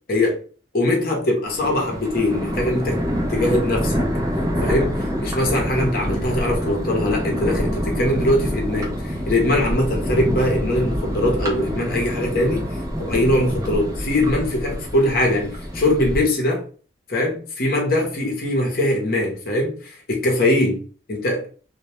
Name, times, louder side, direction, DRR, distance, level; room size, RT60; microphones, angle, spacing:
voice 1, 0.1-0.4 0.7-3.0 3.3-4.0 4.6-12.6 13.0-16.6 17.1-20.8 21.1-21.5, left 1 dB, 55° left, 0.7 m, -21 dB
Thunder, 1.4-16.2, equal, 15° right, 0.5 m, -26 dB
2.2 x 2.1 x 2.9 m
head